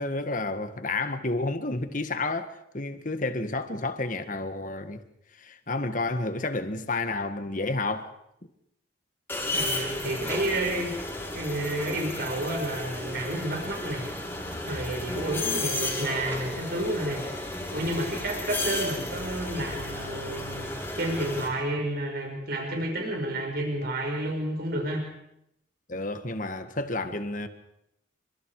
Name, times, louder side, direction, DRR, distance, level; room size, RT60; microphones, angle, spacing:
voice 1, 0.0-5.0 5.4-8.1 15.1-15.3 25.9-27.5, left 2 dB, 40° left, 1.8 m, -30 dB
sound 1, 9.3-21.5, left 2 dB, 10° left, 6.6 m, -33 dB
voice 2, 9.5-11.0 11.3-14.1 14.6-17.3 17.7-20.7 21.0-25.0, right 1 dB, 50° right, 5.7 m, -30 dB
29.5 x 25.5 x 5.0 m
head